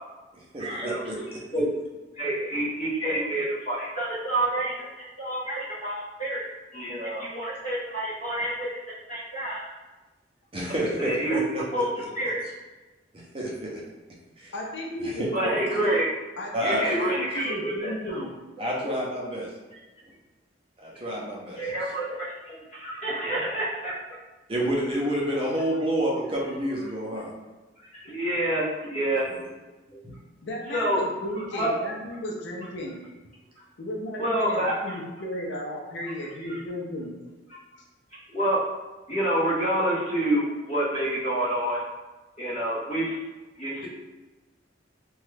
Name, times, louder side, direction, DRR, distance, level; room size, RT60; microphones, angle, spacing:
voice 1, 0.3-1.4 10.5-11.6 12.0-12.1 13.3-13.7 14.4-14.5 15.0-15.3 16.5-16.8 18.6-19.5 20.8-21.6 24.5-27.3 29.3-29.4 30.0-30.1, right 1 dB, 30° right, -4 dB, 0.6 m, -29 dB
voice 2, 2.1-6.4 6.7-8.7 9.1-9.6 10.7-11.4 11.7-11.9 12.1-12.4 15.3-16.1 16.6-18.2 21.6-23.9 27.8-29.2 29.9-30.0 30.7-31.0 31.5-31.7 34.2-34.9 38.3-38.6 39.1-41.8 42.4-43.2 43.6-43.9, right 1 dB, 35° left, -6 dB, 0.9 m, -28 dB
voice 3, 14.5-16.0 16.4-18.4 28.1-28.2 30.4-33.0 33.8-37.1, left 1 dB, 65° left, -1 dB, 0.5 m, -34 dB
2.9 x 2.2 x 3.2 m, 1.2 s
head